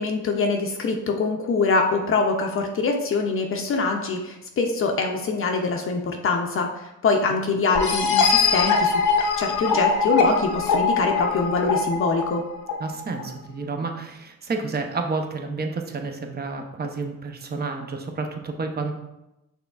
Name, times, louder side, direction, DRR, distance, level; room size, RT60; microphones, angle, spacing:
voice 1, 0.0-9.0 9.4-12.4, left 4 dB, 45° left, 2 dB, 0.6 m, -24 dB
sound 1, 7.7-13.2, left 5 dB, 80° left, 0.7 m, -22 dB
voice 2, 12.8-18.9, right 3 dB, 35° right, 4 dB, 0.7 m, -30 dB
6.1 x 3.4 x 2.4 m, 0.93 s
cardioid pair, 90°, 30 cm